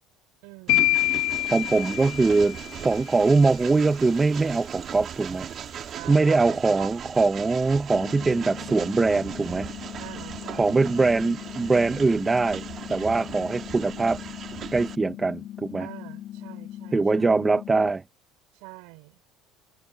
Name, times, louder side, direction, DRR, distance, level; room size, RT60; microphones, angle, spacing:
voice 1, 0.4-1.1 5.9-6.9 10.0-11.2 15.8-17.4 18.5-19.2, right 27 dB, 90° right, 5.1 m, -45 dB
sound 1, 0.7-2.8, left 22 dB, 85° left, 0.4 m, -25 dB
Train, 0.7-15.0, right 8 dB, 35° right, 1.4 m, -38 dB
voice 2, 1.5-5.5 6.1-9.7 10.5-12.6 12.9-14.2 14.7-15.9 16.9-18.0, right 3 dB, 15° right, 0.6 m, -22 dB
sound 2, 7.9-17.9, left 12 dB, 45° left, 6.0 m, -40 dB
cardioid pair, 160°, 0 cm